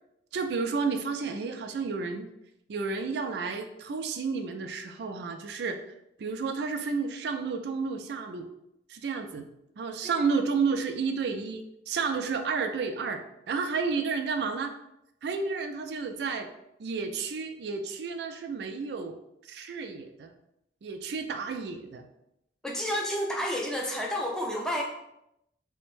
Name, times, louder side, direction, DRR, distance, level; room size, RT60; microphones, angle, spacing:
voice 1, 0.3-2.3 2.7-5.8 6.2-8.5 8.9-9.5 9.8-14.7 15.2-16.5 16.8-19.1 19.4-20.3 20.8-22.1, right 5 dB, 70° right, 6 dB, 0.3 m, -31 dB
voice 2, 22.6-24.8, equal, 5° left, -1 dB, 0.4 m, -30 dB
3.3 x 2.1 x 3.1 m, 0.82 s
head